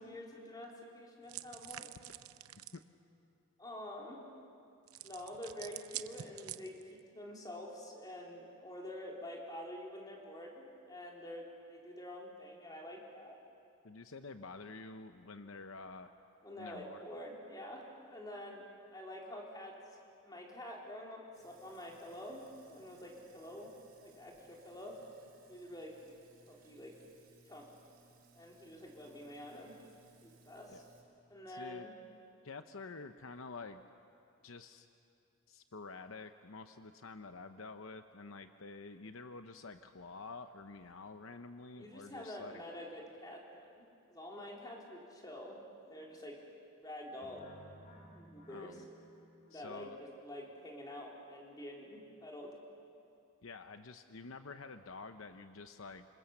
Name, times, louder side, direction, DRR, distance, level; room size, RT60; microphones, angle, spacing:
voice 1, 0.0-1.9 3.6-4.2 5.0-11.4 11.7-13.4 16.4-18.6 18.9-19.8 20.2-23.7 24.0-25.0 25.5-26.1 26.5-26.9 27.5-27.7 28.3-29.7 30.2-30.8 31.3-31.9 41.8-46.4 46.8-47.4 48.1-48.8 49.5-52.5, left 1 dB, 20° left, -2 dB, 3.7 m, -47 dB
sound 1, 1.3-2.8 4.9-7.0, right 13 dB, 85° right, 0.7 m, -47 dB
voice 2, 13.8-16.1 16.6-17.0 30.7-30.8 31.5-31.9 32.4-33.8 34.4-34.9 35.5-42.5 48.5-48.9 49.5-50.0 53.4-56.1, left 3 dB, 65° left, 8 dB, 0.8 m, -49 dB
Sink (filling or washing), 21.3-31.0, right 4 dB, 40° right, 5.5 m, -65 dB
sound 2, 47.2-50.1, right 1 dB, 35° left, 4.7 m, -58 dB
26.5 x 26.5 x 7.2 m, 2.6 s
head